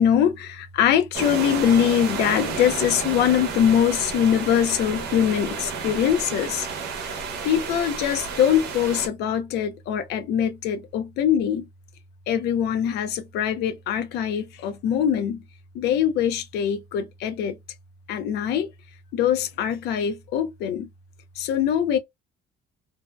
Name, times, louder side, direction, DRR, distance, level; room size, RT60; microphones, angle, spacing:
voice 1, 0.0-6.7 7.0-11.7 12.3-15.4 15.7-17.6 18.1-18.7 19.1-20.9 21.4-22.0, left 9 dB, 80° left, 0.5 m, -23 dB
sound 1, 1.1-9.1, right 5 dB, 85° right, 0.8 m, -31 dB
2.6 x 2.1 x 2.2 m
cardioid pair, 110°, 17 cm